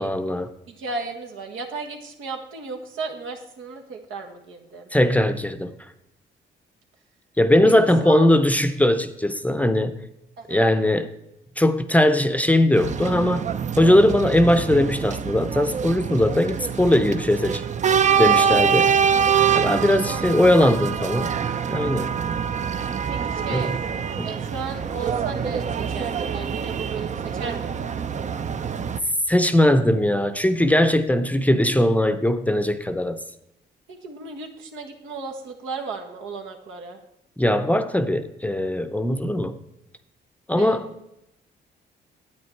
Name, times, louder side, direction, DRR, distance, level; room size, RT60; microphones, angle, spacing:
voice 1, 0.0-0.5 4.9-5.7 7.4-10.0 10.5-11.1 11.6-13.5 13.8-17.6 18.2-18.9 19.5-21.4 21.7-22.1 23.5-23.8 24.2-24.3 29.3-33.2 37.4-39.6 40.5-40.9, left 1 dB, 5° left, 10 dB, 0.6 m, -20 dB
voice 2, 0.7-4.9 7.6-7.7 8.0-8.3 10.4-10.7 18.2-18.5 20.0-20.3 23.1-23.8 24.2-27.9 33.9-37.0 40.5-40.8, right 4 dB, 85° right, 3 dB, 1.6 m, -35 dB
sound 1, 12.7-29.0, right 7 dB, 35° right, 0.5 m, -25 dB
9.6 x 8.7 x 4.4 m, 0.85 s
cardioid pair, 90°, 20 cm